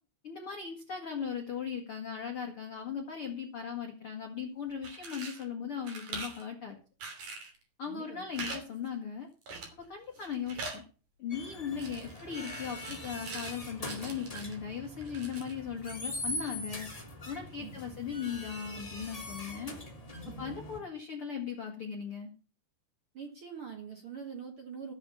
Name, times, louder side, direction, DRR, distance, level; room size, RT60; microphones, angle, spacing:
voice 1, 0.2-6.8 7.8-9.3 9.8-10.8 11.2-16.9 17.3-19.7 20.4-22.3, left 7 dB, 85° left, 2 dB, 1.2 m, -38 dB
sound 1, 4.7-5.4 5.8-6.4 7.0-7.6 8.3-8.6 8.9-9.0 9.5-9.9 10.2-10.8 11.8-13.6 13.8-14.6 15.0-15.6, right 3 dB, 45° right, 3.9 m, -43 dB
voice 2, 7.9-8.3 17.6-17.7 20.2-20.5 23.1-24.9, right 7 dB, 80° right, 3 dB, 1.2 m, -44 dB
sound 2, 11.3-20.8, left 1 dB, 15° left, 1.4 m, -42 dB
14.0 x 7.2 x 7.0 m, 0.36 s
omnidirectional pair, 5.6 m